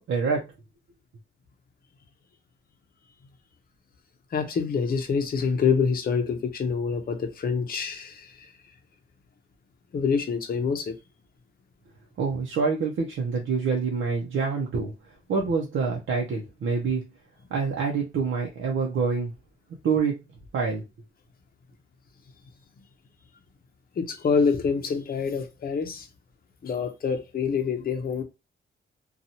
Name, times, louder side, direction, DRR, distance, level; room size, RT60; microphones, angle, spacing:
voice 1, 0.1-0.5 12.2-14.9 15.3-17.1 17.5-19.3 19.8-20.2 20.5-20.8, right 5 dB, 80° right, 0.6 m, -26 dB
voice 2, 4.3-8.3 9.9-10.9 24.0-26.0 26.6-28.2, left 5 dB, 45° left, 0.6 m, -26 dB
2.8 x 2.3 x 2.7 m
cardioid pair, 100°, 20 cm